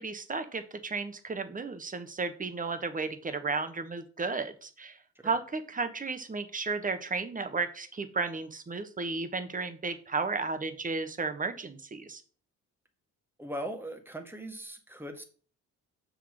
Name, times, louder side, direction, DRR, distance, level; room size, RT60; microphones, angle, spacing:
voice 1, 0.0-5.0 5.2-12.2, right 4 dB, 25° right, 10 dB, 1.3 m, -33 dB
voice 2, 13.4-15.2, right 1 dB, 5° right, 6 dB, 1.6 m, -39 dB
6.9 x 6.4 x 4.9 m, 0.40 s
cardioid pair, 90°, 30 cm